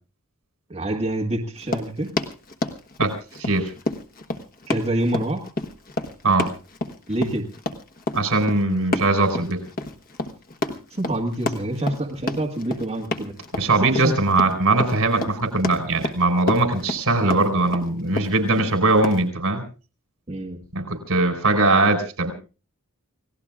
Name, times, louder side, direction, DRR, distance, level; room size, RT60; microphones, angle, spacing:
voice 1, 0.7-2.1 4.7-5.4 7.1-7.5 11.0-13.3 13.9-14.1 20.3-20.6, right 1 dB, 30° right, 0 dB, 1.8 m, -26 dB
Run, 1.6-19.2, left 2 dB, 40° left, 1.3 m, -30 dB
voice 2, 3.4-3.7 6.2-6.5 8.1-9.6 13.5-19.6 20.7-22.3, right 2 dB, 75° right, 4 dB, 4.9 m, -20 dB
30.0 x 17.5 x 2.5 m, 0.35 s
head